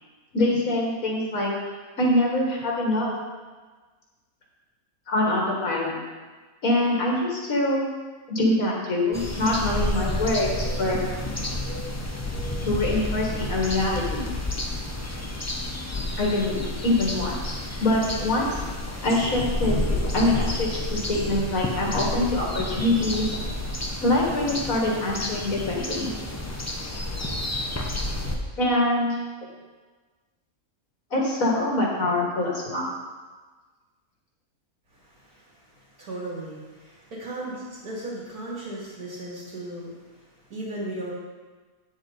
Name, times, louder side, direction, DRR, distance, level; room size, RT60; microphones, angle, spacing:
voice 1, 0.3-1.5 2.0-3.1 5.1-6.0 6.6-7.8 8.3-11.0 12.7-14.3 16.2-17.5 17.8-18.6 19.0-23.3 24.0-26.1 28.6-29.2 31.1-32.9, left 1 dB, 70° left, -2 dB, 2.2 m, -24 dB
sound 1, 9.1-28.4, left 1 dB, 25° left, 0.3 m, -30 dB
voice 2, 34.9-41.1, right 1 dB, 75° right, -6 dB, 2.8 m, -37 dB
8.9 x 7.1 x 3.9 m, 1.3 s
omnidirectional pair, 1.5 m